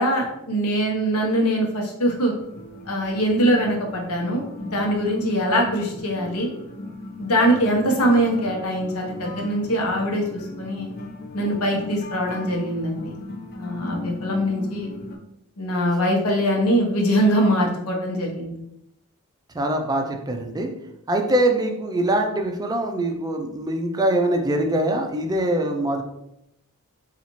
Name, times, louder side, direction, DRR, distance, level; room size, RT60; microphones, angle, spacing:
voice 1, 0.0-2.3 2.9-6.5 7.2-10.9 11.3-13.1 13.5-14.9 15.6-18.5, equal, 90° left, 0 dB, 0.9 m, -22 dB
sound 1, 2.4-15.2, left 2 dB, 45° left, 0.5 m, -37 dB
voice 2, 19.5-20.7 21.1-26.0, right 1 dB, 20° right, 4 dB, 0.4 m, -23 dB
4.0 x 2.4 x 2.9 m, 0.82 s
head